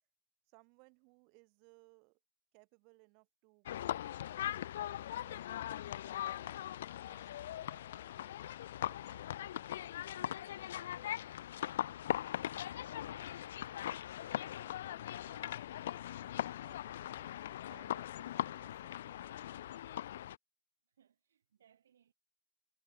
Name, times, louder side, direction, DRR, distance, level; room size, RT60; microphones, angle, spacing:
voice 1, 0.5-2.2 2.5-6.6 7.1-8.5 8.8-11.2 11.5-19.9, right 38 dB, 40° right, 6.4 m, -67 dB
sound 1, 3.7-20.4, left 12 dB, 60° left, 0.6 m, -40 dB
sound 2, 6.8-14.8, right 1 dB, 5° right, 6.9 m, -77 dB
voice 2, 20.9-22.1, right 9 dB, 70° right, 4.5 m, -70 dB
hypercardioid pair, 135°, 0 cm